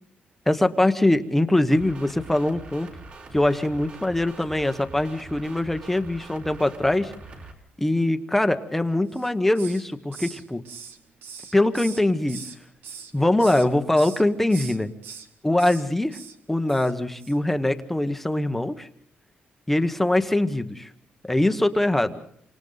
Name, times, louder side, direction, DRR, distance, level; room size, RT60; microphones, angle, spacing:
voice 1, 0.5-2.9 3.3-7.1 7.8-10.6 11.5-12.5 13.1-14.9 15.4-16.2 16.5-18.9 19.7-20.9 21.2-22.2, left 1 dB, 5° left, 8 dB, 1.1 m, -22 dB
sound 1, 1.7-7.5, right 3 dB, 45° right, 3.8 m, -43 dB
Hiss, 9.1-9.9 10.1-12.6 12.8-13.7 14.0-14.2 14.5-15.3 15.6-15.8 16.1-16.4 16.7-16.9 17.2-17.4, right 6 dB, 80° right, 2.0 m, -41 dB
28.5 x 25.5 x 4.0 m, 0.66 s
cardioid pair, 165°, 4 cm